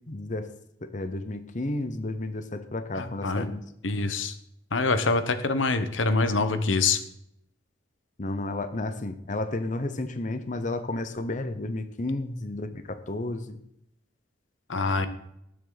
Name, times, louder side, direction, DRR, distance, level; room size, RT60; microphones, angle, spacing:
voice 1, 0.1-0.5 0.8-3.6 8.2-13.6 14.9-15.1, left 2 dB, 40° left, 9 dB, 0.9 m, -32 dB
voice 2, 3.0-3.5 3.8-4.3 4.7-7.0 14.7-15.1, left 3 dB, 90° left, 10 dB, 1.1 m, -25 dB
19.0 x 7.9 x 4.0 m, 0.75 s
head